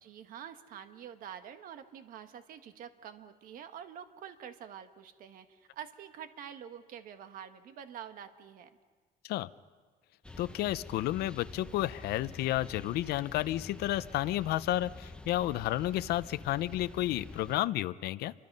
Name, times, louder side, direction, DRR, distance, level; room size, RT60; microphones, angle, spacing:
voice 1, 0.0-8.7, right 9 dB, 55° right, 8 dB, 1.5 m, -47 dB
sound 1, 10.2-17.6, left 2 dB, 5° left, 0.8 m, -48 dB
voice 2, 10.4-18.3, left 15 dB, 65° left, 15 dB, 0.7 m, -31 dB
29.5 x 24.5 x 5.4 m, 1.5 s
cardioid pair, 170°, 18 cm